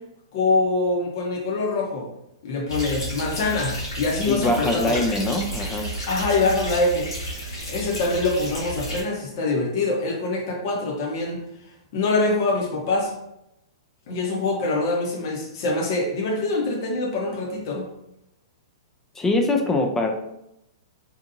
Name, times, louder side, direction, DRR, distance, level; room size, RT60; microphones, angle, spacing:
voice 1, 0.3-2.1 2.4-5.0 6.1-7.1 7.7-11.4 11.9-13.1 14.1-17.8, left 3 dB, 55° left, -1 dB, 0.8 m, -24 dB
sound 1, 2.7-9.0, equal, 90° left, 1.3 m, -32 dB
voice 2, 4.3-6.0 19.1-20.1, left 2 dB, 15° left, 2 dB, 0.4 m, -23 dB
2.8 x 2.4 x 2.5 m, 0.82 s
hypercardioid pair, 115°, 2 cm